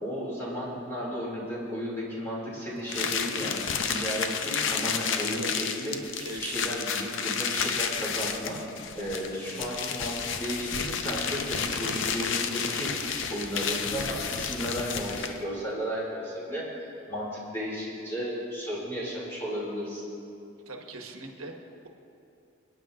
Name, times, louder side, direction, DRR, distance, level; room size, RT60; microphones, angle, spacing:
voice 1, 0.0-8.6 8.9-12.9 13.3-16.6 17.1-20.0, equal, 10° left, -6 dB, 2.6 m, -34 dB
sound 1, 2.9-15.5, left 6 dB, 60° left, 0.6 m, -31 dB
voice 2, 6.2-6.7 9.5-9.6 20.7-21.5, right 3 dB, 85° right, 3 dB, 1.2 m, -40 dB
26.0 x 9.5 x 2.5 m, 2.6 s
head